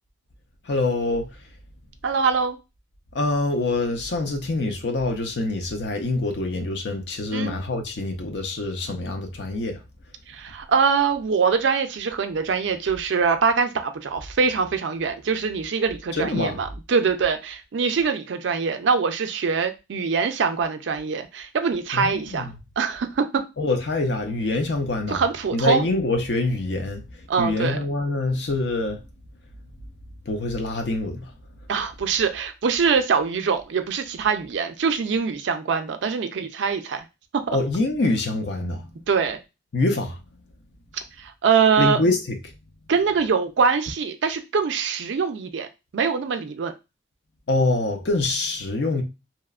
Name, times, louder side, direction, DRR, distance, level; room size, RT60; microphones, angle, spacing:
voice 1, 0.7-1.3 3.1-9.8 16.1-16.6 21.9-22.5 23.6-25.2 25.5-29.0 30.3-31.3 37.5-38.9 39.7-40.2 41.8-42.6 47.5-49.0, left 2 dB, 60° left, 0.5 m, -25 dB
voice 2, 2.0-2.6 7.3-7.5 10.3-22.5 22.8-23.4 25.1-25.9 27.3-27.8 31.7-37.0 37.3-37.6 39.1-39.4 41.2-42.0 42.9-45.7 45.9-46.7, right 5 dB, 70° right, 0.4 m, -23 dB
2.8 x 2.0 x 2.3 m
head